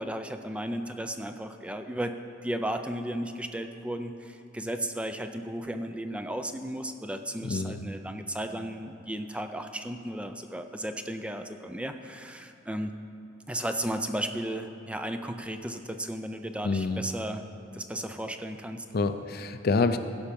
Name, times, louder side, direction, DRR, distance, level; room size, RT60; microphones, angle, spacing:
voice 1, 0.0-2.1 2.4-12.9 13.5-17.4 17.7-18.8, right 1 dB, 5° right, 7 dB, 0.4 m, -34 dB
voice 2, 7.4-7.8 16.6-17.0 18.9-20.0, left 3 dB, 50° left, 10 dB, 0.5 m, -27 dB
16.5 x 5.6 x 5.2 m, 2.7 s
head